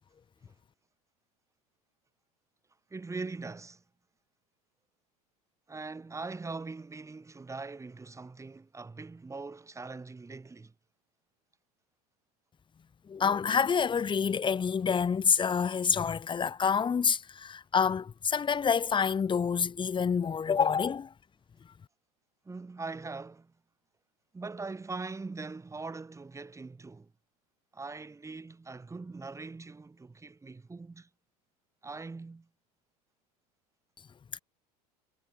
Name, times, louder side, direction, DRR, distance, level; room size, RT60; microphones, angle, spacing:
voice 1, 2.9-3.8 5.7-10.7 22.4-23.5 24.3-27.1 27.7-31.1 31.8-32.5, right 3 dB, 15° right, 4.8 m, -41 dB
voice 2, 13.1-21.1, left 6 dB, 25° left, 1.7 m, -27 dB
hypercardioid pair, 95°, 20 cm